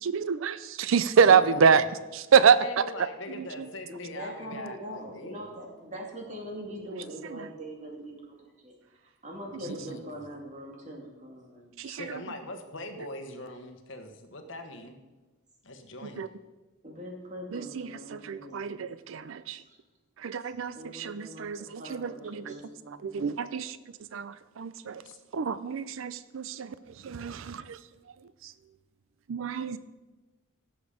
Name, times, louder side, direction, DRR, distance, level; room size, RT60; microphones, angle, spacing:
voice 1, 0.0-1.8 2.3-2.6 7.2-7.3 11.8-12.0 16.2-16.3 17.5-19.6 20.2-22.5 23.0-23.8 24.1-25.0 25.3-26.7 27.0-27.8 29.3-29.8, right 6 dB, 70° right, 15 dB, 0.4 m, -26 dB
voice 2, 1.2-1.8 2.3-5.5 9.6-10.0 11.8-15.0 15.6-16.2 23.4-23.5 25.0-25.2, left 1 dB, 65° left, 6 dB, 1.3 m, -41 dB
voice 3, 3.9-8.7 9.2-11.7 16.8-18.8 19.5-19.8 20.7-23.1, equal, 35° right, 0 dB, 2.4 m, -42 dB
17.0 x 7.1 x 5.0 m, 1.2 s
head